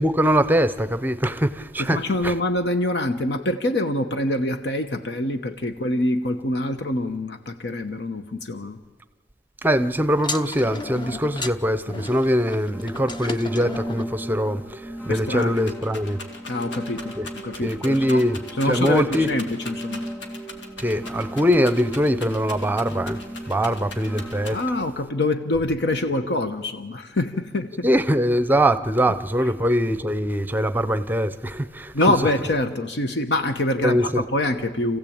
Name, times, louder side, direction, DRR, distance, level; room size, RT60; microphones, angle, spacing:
voice 1, 0.0-2.3 9.6-16.2 17.2-17.3 17.6-18.4 18.7-19.3 20.8-23.2 23.5-24.6 27.8-31.9 33.8-34.2, equal, 10° right, 0.8 m, -22 dB
voice 2, 1.8-8.8 15.1-15.7 16.5-17.1 17.4-18.2 18.6-20.0 24.5-27.9 31.9-35.0, left 1 dB, 65° left, 1.1 m, -25 dB
sound 1, 10.2-14.1, left 3 dB, 25° left, 0.8 m, -34 dB
sound 2, 12.7-24.7, equal, 10° left, 3.1 m, -36 dB
Rattle, 15.0-24.9 25.5-26.2, left 3 dB, 80° left, 2.3 m, -40 dB
28.0 x 15.5 x 8.8 m
head